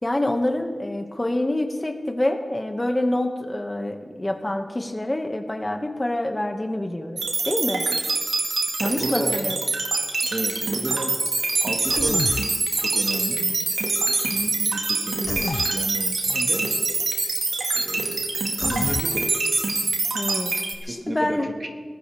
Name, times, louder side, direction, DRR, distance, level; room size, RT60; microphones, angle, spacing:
voice 1, 0.0-7.8 8.8-9.6 20.1-20.5 20.9-21.5, left 1 dB, 25° left, 4 dB, 2.0 m, -26 dB
sound 1, 7.2-20.7, right 3 dB, 90° right, 2.1 m, -24 dB
voice 2, 8.8-9.5 10.3-11.2 11.6-12.2 12.8-13.5 14.3-16.7 17.7-18.2 18.6-19.4 20.8-21.4, right 1 dB, 45° right, 3 dB, 2.0 m, -32 dB
Human voice, 11.9-12.5 15.2-15.7 18.6-19.1, left 4 dB, 70° left, 0.4 m, -29 dB
23.0 x 15.5 x 3.6 m, 1.5 s
cardioid pair, 40°, 0 cm